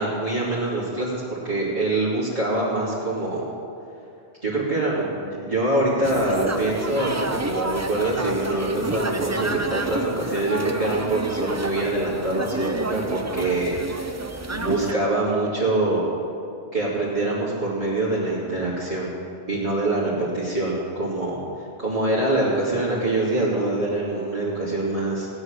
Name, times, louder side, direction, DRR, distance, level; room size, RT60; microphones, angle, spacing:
voice 1, 0.0-3.5 4.4-14.1 14.5-16.0 16.7-19.1 19.5-25.3, right 2 dB, 35° right, -9 dB, 2.9 m, -24 dB
sound 1, 6.0-14.9, right 2 dB, 20° right, 0.5 m, -30 dB
17.5 x 9.7 x 6.6 m, 2.6 s
omnidirectional pair, 1.2 m